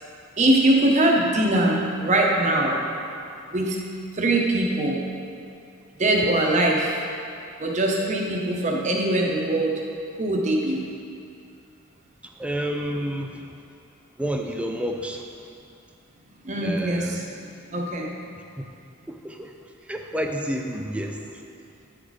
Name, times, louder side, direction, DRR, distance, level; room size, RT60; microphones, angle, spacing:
voice 1, 0.4-2.8 3.5-3.8 4.1-5.0 6.0-7.0 7.6-9.8 10.2-10.8 16.4-17.3 17.7-18.1, right 1 dB, 35° right, -1 dB, 0.8 m, -22 dB
voice 2, 12.4-13.5 14.2-15.2 16.6-17.2 18.6-18.7 19.1-19.5 19.9-21.2, equal, 5° right, 3 dB, 0.3 m, -29 dB
9.0 x 4.0 x 4.8 m, 2.5 s
head